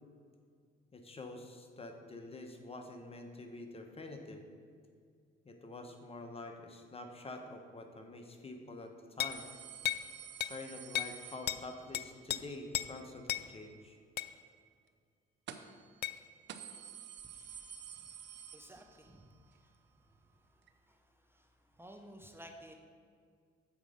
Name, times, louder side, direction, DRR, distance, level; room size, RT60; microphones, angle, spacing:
voice 1, 0.9-4.5 5.4-9.5 10.5-14.0, left 2 dB, 30° left, 4 dB, 1.0 m, -47 dB
sound 1, 9.2-9.4 9.8-10.1 10.4-10.6 10.9-11.2 11.5-11.6 11.9-12.4 12.7-12.9 13.3-13.5 14.2-14.3 16.0-16.2, left 12 dB, 55° left, 0.4 m, -35 dB
sound 2, 9.3-12.0 15.5-15.9 16.2-16.3 16.5-19.2 19.6-19.7 20.7-20.8, right 8 dB, 65° right, 0.6 m, -50 dB
voice 2, 17.3-17.7 18.5-19.3 19.6-19.7 20.9-21.0 21.3-21.5 21.8-22.7, equal, 10° right, 3 dB, 0.8 m, -54 dB
7.3 x 4.8 x 6.4 m, 2.1 s
cardioid pair, 90°, 20 cm